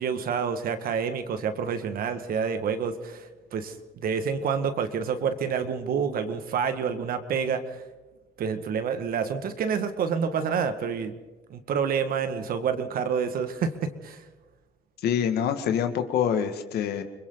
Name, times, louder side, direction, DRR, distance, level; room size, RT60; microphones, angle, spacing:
voice 1, 0.0-7.8 8.4-11.1 11.5-14.2, right 6 dB, 60° right, 8 dB, 2.0 m, -28 dB
voice 2, 15.0-17.0, left 8 dB, 70° left, 7 dB, 2.2 m, -25 dB
30.0 x 22.0 x 4.1 m, 1.2 s
cardioid pair, 110°, 17 cm